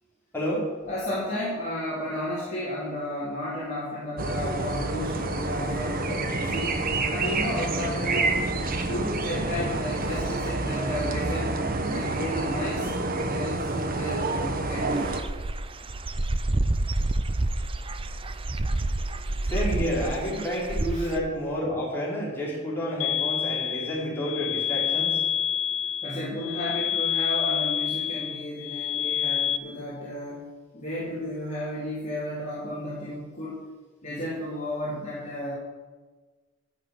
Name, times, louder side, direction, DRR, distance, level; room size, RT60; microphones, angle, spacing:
voice 1, 0.3-0.7 18.4-18.6 19.1-25.9, equal, 10° left, -6 dB, 4.7 m, -30 dB
voice 2, 0.9-6.8 7.1-8.4 8.9-11.6 11.9-12.9 13.2-15.0 20.9-21.1 26.0-30.5 30.7-33.6 34.0-35.5, left 1 dB, 35° left, -8 dB, 3.5 m, -33 dB
sound 1, 4.2-15.2, right 2 dB, 45° right, 1.2 m, -28 dB
Dog / Bird, 14.9-21.2, right 2 dB, 25° right, 0.6 m, -28 dB
sound 2, 23.0-29.6, left 9 dB, 70° left, 0.5 m, -28 dB
15.0 x 6.8 x 8.0 m, 1.3 s
head